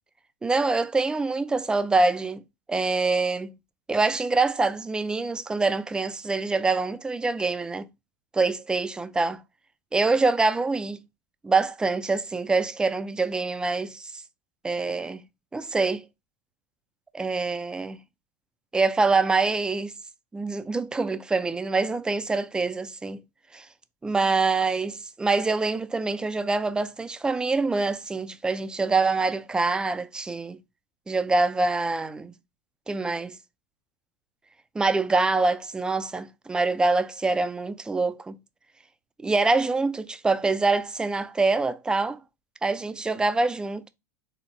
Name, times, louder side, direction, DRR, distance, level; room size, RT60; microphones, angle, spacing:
voice 1, 0.4-2.4 2.7-3.6 3.9-7.9 8.3-9.4 9.9-11.0 11.4-14.2 14.6-15.2 15.5-16.1 17.1-18.0 18.7-19.9 20.3-23.2 23.5-23.7 24.0-30.6 31.1-32.3 32.9-33.4 34.7-38.4 39.2-42.2 42.6-43.9, right 3 dB, 10° right, 0.4 m, -25 dB
4.3 x 2.1 x 4.2 m
hypercardioid pair, 105°, 9 cm